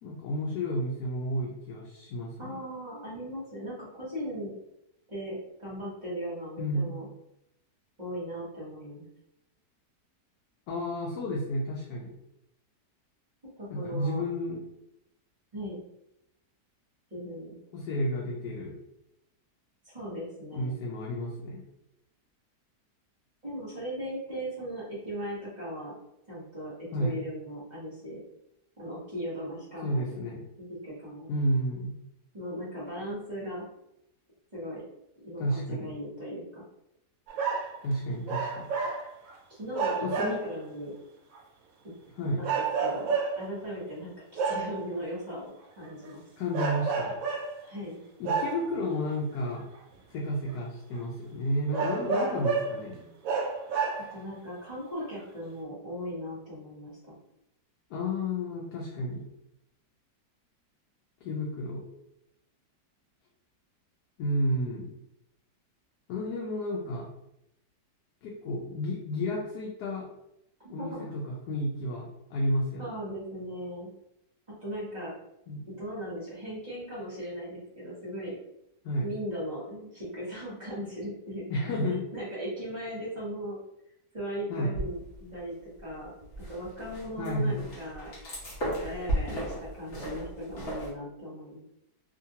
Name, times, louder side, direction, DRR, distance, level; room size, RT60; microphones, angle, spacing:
voice 1, 0.0-2.6 6.6-6.9 10.7-12.1 13.7-14.6 17.7-18.8 20.5-21.6 26.9-27.2 29.8-30.4 31.3-31.9 35.4-35.9 37.8-38.7 40.0-40.4 42.2-42.4 46.4-47.2 48.2-49.7 50.1-53.0 57.9-59.2 61.2-61.8 64.2-64.9 66.1-67.1 68.2-70.1 70.7-72.9 75.5-75.6 78.8-79.1 81.5-82.1 84.5-84.7 87.2-87.6, equal, 75° left, -3 dB, 1.1 m, -31 dB
voice 2, 2.4-4.5 5.1-7.1 8.0-9.1 13.6-14.2 15.5-15.8 17.1-17.6 19.8-20.8 23.4-25.9 26.3-28.2 28.8-30.0 30.6-31.3 32.3-33.7 34.5-34.8 35.2-36.6 39.6-40.9 42.4-45.4 45.8-46.2 47.6-48.0 52.0-52.4 52.8-53.2 54.1-57.1 70.6-71.1 72.8-73.9 74.6-75.2 75.8-78.4 79.0-81.4 82.1-83.6 84.1-86.1 86.5-88.1 88.6-91.6, equal, 30° right, -8 dB, 1.0 m, -38 dB
sound 1, 37.3-37.8 38.3-39.4 39.7-40.6 41.3-41.4 42.4-43.6 44.4-44.8 45.9-46.1 46.5-47.6 48.2-48.9 49.7-49.8 50.5-50.6 51.0-51.1 51.7-52.8 53.2-54.3 55.0-55.1, right 5 dB, 70° right, 0.8 m, -30 dB
sound 2, 84.7-85.4 85.8-90.9, right 1 dB, 50° left, 1.1 m, -35 dB
2.8 x 2.5 x 2.7 m, 0.82 s
omnidirectional pair, 1.8 m